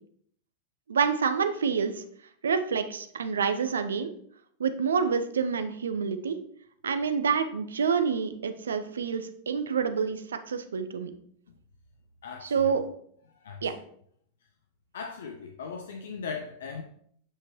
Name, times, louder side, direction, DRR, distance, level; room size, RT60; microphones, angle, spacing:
voice 1, 0.9-2.0 2.4-4.1 4.6-6.4 6.8-11.1 12.4-12.8 13.6-13.7, right 6 dB, 70° right, 10 dB, 0.6 m, -27 dB
voice 2, 12.2-12.8 13.4-13.6 14.9-16.8, left 5 dB, 60° left, 5 dB, 0.5 m, -38 dB
8.6 x 5.2 x 3.0 m, 0.64 s
figure-of-eight pair, 90°, 0 cm